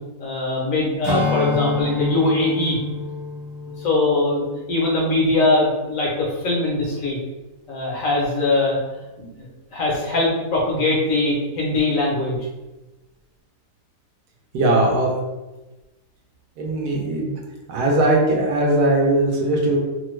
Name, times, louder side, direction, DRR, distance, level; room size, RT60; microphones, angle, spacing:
voice 1, 0.2-2.8 3.8-7.2 7.7-8.8 9.2-9.4 9.7-12.4, left 2 dB, 60° left, -4 dB, 1.0 m, -21 dB
Strum, 1.0-5.7 6.1-6.3, left 3 dB, 25° left, 0.7 m, -28 dB
voice 2, 14.5-15.2 16.6-17.3 17.7-19.8, right 1 dB, 75° right, 0 dB, 1.2 m, -19 dB
3.0 x 2.1 x 3.1 m, 1.1 s
omnidirectional pair, 1.7 m